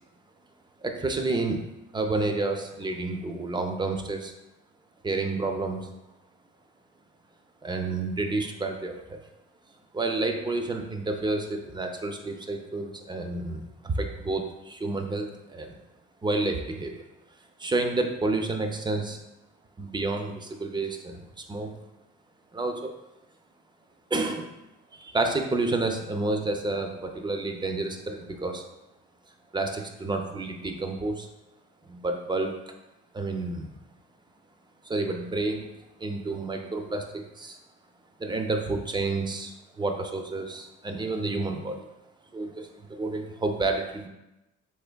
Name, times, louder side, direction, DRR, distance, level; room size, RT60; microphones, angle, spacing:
voice 1, 0.8-1.6 1.9-4.3 5.0-5.9 7.6-9.2 9.9-15.8 16.2-17.0 17.6-19.2 19.8-21.7 22.5-22.9 24.1-24.5 24.9-28.6 29.5-31.3 31.8-32.6 33.1-33.8 34.8-35.7 36.0-37.6 38.2-41.8 42.3-44.1, right 2 dB, 15° right, 4 dB, 0.3 m, -30 dB
3.3 x 3.2 x 2.2 m, 0.95 s
cardioid pair, 90°, 30 cm